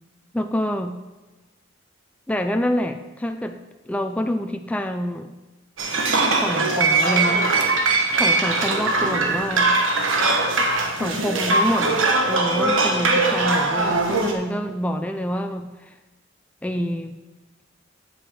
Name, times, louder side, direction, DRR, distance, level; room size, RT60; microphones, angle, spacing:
voice 1, 0.3-1.0 2.3-3.6 3.9-5.3 6.3-7.5 8.2-9.7 11.0-12.0 12.3-16.0 16.6-17.2, equal, 5° left, 6 dB, 0.3 m, -27 dB
sound 1, 5.8-14.3, right 3 dB, 80° right, 1.2 m, -21 dB
8.0 x 7.6 x 4.7 m, 1.1 s
head